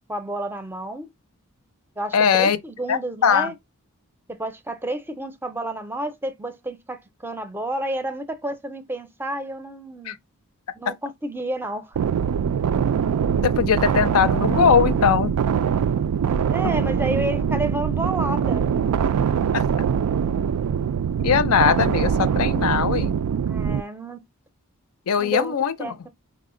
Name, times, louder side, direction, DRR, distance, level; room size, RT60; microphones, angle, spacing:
voice 1, 0.1-1.1 2.0-3.5 4.3-10.2 10.8-12.0 16.5-18.7 23.5-24.3 25.2-26.1, right 1 dB, 10° right, 0.5 m, -30 dB
voice 2, 2.1-2.6 2.9-3.5 10.0-10.2 13.4-15.3 19.5-19.6 21.2-23.1 25.1-26.1, left 7 dB, 70° left, 0.5 m, -20 dB
sound 1, 11.9-23.8, right 7 dB, 90° right, 0.3 m, -23 dB
4.8 x 2.1 x 3.7 m
head